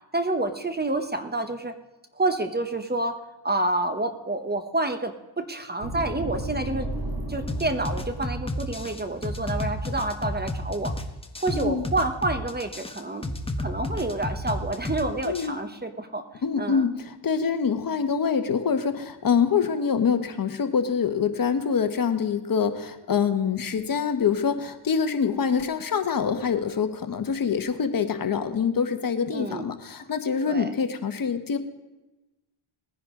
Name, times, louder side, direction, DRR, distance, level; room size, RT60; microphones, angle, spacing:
voice 1, 0.1-1.7 2.1-6.9 7.3-11.0 11.4-13.3 13.6-16.9 29.3-29.7 30.4-30.7, right 2 dB, 20° right, 8 dB, 1.0 m, -28 dB
sound 1, 5.8-10.9, right 1 dB, 55° right, 4.0 m, -35 dB
sound 2, 7.5-15.5, left 1 dB, 10° left, 1.2 m, -31 dB
voice 2, 11.5-11.8 15.2-15.6 16.4-31.6, left 6 dB, 45° left, 8 dB, 1.2 m, -25 dB
19.5 x 10.0 x 3.8 m, 1.0 s
cardioid pair, 85°, 49 cm